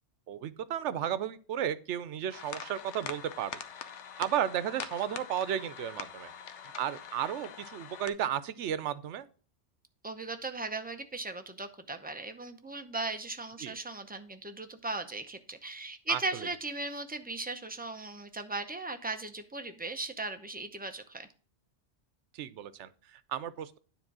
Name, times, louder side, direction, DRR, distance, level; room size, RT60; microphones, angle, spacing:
voice 1, 0.3-3.5 4.2-6.3 6.8-9.3 13.6-13.7 16.1-16.5 22.3-23.8, right 10 dB, 90° right, 0.9 m, -34 dB
sound 1, 2.3-8.1, left 8 dB, 85° left, 1.0 m, -44 dB
voice 2, 10.0-21.3, right 3 dB, 10° right, 0.5 m, -37 dB
9.7 x 3.7 x 6.0 m
omnidirectional pair, 1.2 m